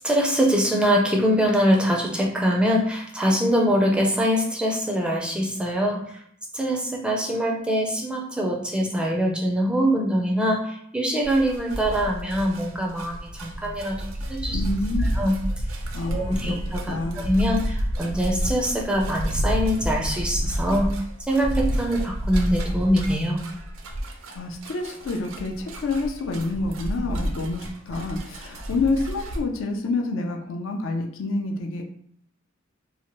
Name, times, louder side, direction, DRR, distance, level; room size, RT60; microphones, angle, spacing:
voice 1, 0.0-6.0 6.5-14.6 15.2-15.4 16.1-20.9 21.3-23.4, equal, 5° right, -1 dB, 0.4 m, -23 dB
sound 1, 11.2-29.4, equal, 75° right, 0.4 m, -30 dB
voice 2, 14.5-15.1 15.9-16.6 16.9-17.2 24.3-31.8, left 3 dB, 70° left, 3 dB, 0.5 m, -28 dB
2.8 x 2.1 x 2.9 m, 0.67 s
head